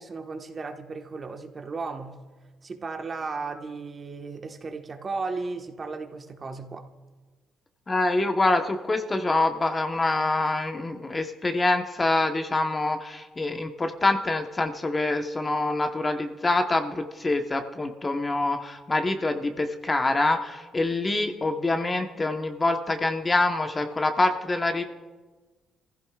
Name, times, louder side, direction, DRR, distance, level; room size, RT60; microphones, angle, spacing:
voice 1, 0.0-2.1 2.6-6.9, right 4 dB, 40° right, 4 dB, 1.3 m, -35 dB
voice 2, 7.9-24.8, left 2 dB, 25° left, 5 dB, 1.0 m, -25 dB
27.5 x 15.0 x 2.4 m, 1.3 s
cardioid pair, 90°, 0 cm